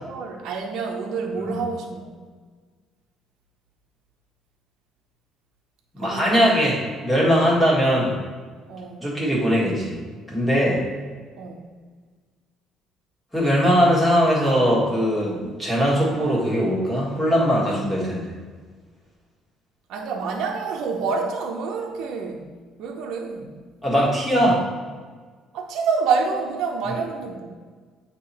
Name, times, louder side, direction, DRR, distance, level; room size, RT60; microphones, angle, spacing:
voice 1, 0.0-2.3 6.0-6.5 8.7-9.1 11.4-11.7 19.9-22.5 22.8-23.5 25.5-27.5, right 5 dB, 70° right, 0 dB, 0.8 m, -28 dB
voice 2, 5.9-8.1 9.0-10.0 10.3-10.8 13.3-18.3 23.8-24.6, equal, 5° left, -6 dB, 1.8 m, -20 dB
8.7 x 2.9 x 4.1 m, 1.5 s
cardioid pair, 145°, 0 cm